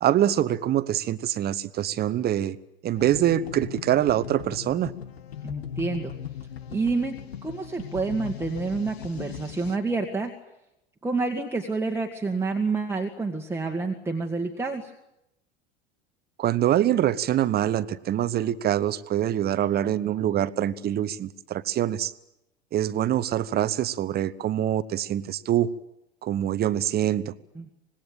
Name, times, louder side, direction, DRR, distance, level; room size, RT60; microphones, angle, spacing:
voice 1, 0.0-2.6 2.8-4.9 16.4-22.1 22.7-25.7 26.2-27.3, right 11 dB, 30° right, 16 dB, 1.1 m, -24 dB
sound 1, 2.9-9.8, left 9 dB, 70° left, 1.4 m, -39 dB
voice 2, 5.4-6.1 6.7-10.3 11.0-14.9 27.6-27.7, right 3 dB, 5° right, 1 dB, 1.8 m, -28 dB
25.5 x 20.5 x 8.9 m, 0.87 s
figure-of-eight pair, 80°, 32 cm